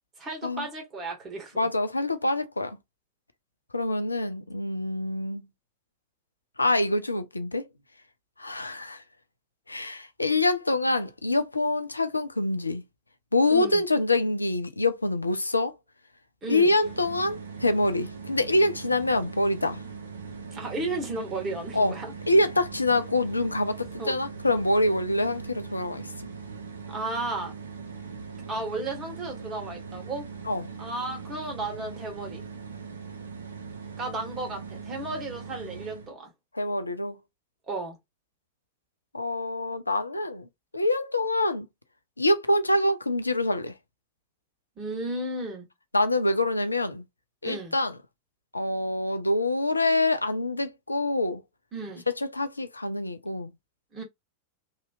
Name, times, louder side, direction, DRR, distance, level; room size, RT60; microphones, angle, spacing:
voice 1, 0.2-1.7 13.5-13.8 16.4-16.7 20.5-22.1 24.0-24.2 26.9-27.5 28.5-30.3 30.8-32.4 34.0-36.3 37.7-38.0 44.8-45.7 47.4-47.7 51.7-52.0 53.9-54.0, right 2 dB, 25° right, 1.3 m, -34 dB
voice 2, 1.6-2.8 3.7-5.5 6.6-7.6 8.4-9.0 9.7-12.8 13.3-15.7 16.5-19.8 21.7-21.9 22.3-26.1 30.5-30.7 36.5-37.2 39.1-40.5 40.7-41.7 42.2-43.7 45.9-47.0 47.4-47.9 48.5-51.4 52.1-53.5, left 2 dB, 80° left, 0.4 m, -25 dB
sound 1, 16.8-36.1, right 5 dB, 70° right, 0.6 m, -40 dB
2.8 x 2.7 x 2.4 m
figure-of-eight pair, 90°, 0 cm